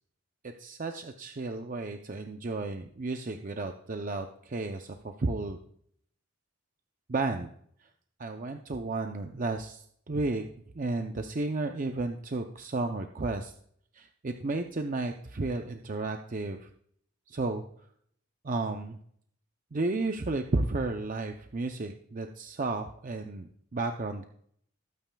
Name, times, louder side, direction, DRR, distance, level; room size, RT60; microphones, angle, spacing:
voice 1, 0.4-5.6 7.1-7.5 7.8-7.9 8.2-10.5 10.7-13.5 13.9-16.7 17.3-17.6 18.4-19.0 19.7-24.3, right 3 dB, 40° right, 5 dB, 0.5 m, -33 dB
20.0 x 8.9 x 2.3 m, 0.65 s
head